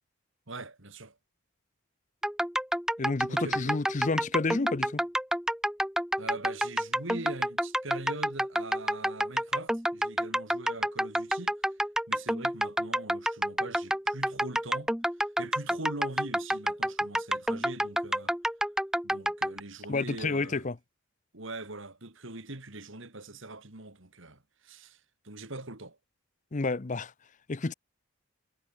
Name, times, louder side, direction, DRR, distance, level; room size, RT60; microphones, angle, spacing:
voice 1, 0.5-1.2 3.3-3.8 6.2-11.6 12.1-14.9 15.2-18.4 19.0-20.7 21.3-26.0, right 2 dB, 60° right, 2.7 m, -42 dB
sound 1, 2.2-19.6, equal, 5° right, 1.3 m, -29 dB
voice 2, 3.0-5.0 19.9-20.7 26.5-27.1 27.5-27.7, left 3 dB, 35° left, 0.6 m, -30 dB
head